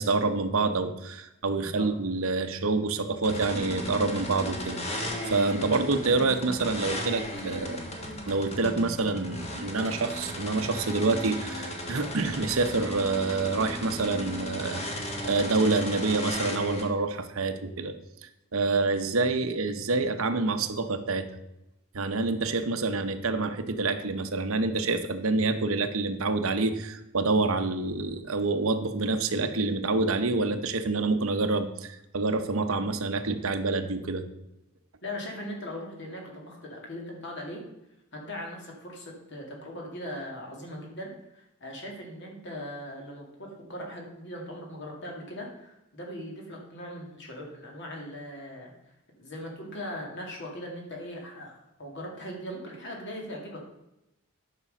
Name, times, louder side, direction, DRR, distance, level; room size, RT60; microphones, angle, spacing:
voice 1, 0.0-7.8 8.3-14.8 15.2-17.9 18.5-21.3 21.9-34.2, right 3 dB, 75° right, 8 dB, 0.9 m, -27 dB
voice 2, 1.5-1.9 12.0-12.1 35.0-37.6 38.1-53.7, equal, 55° left, 0 dB, 2.5 m, -40 dB
sound 1, 3.2-16.8, left 1 dB, 30° left, 1.4 m, -35 dB
9.9 x 6.2 x 5.4 m, 0.90 s
head